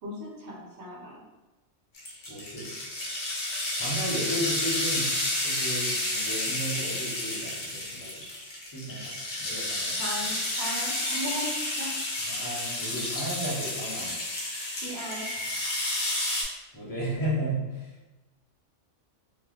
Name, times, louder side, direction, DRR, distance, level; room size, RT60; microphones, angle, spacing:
voice 1, 0.0-1.2 9.9-12.0 14.8-15.3, equal, 65° right, -4 dB, 1.0 m, -37 dB
sound 1, 1.9-16.4, left 1 dB, 55° left, 0.9 m, -31 dB
voice 2, 2.3-2.7 3.7-5.1 5.4-8.2 8.7-9.1 9.4-10.0 12.3-14.1 16.7-17.9, right 1 dB, 25° left, -5 dB, 0.5 m, -33 dB
3.2 x 2.5 x 2.3 m, 1.1 s
omnidirectional pair, 1.3 m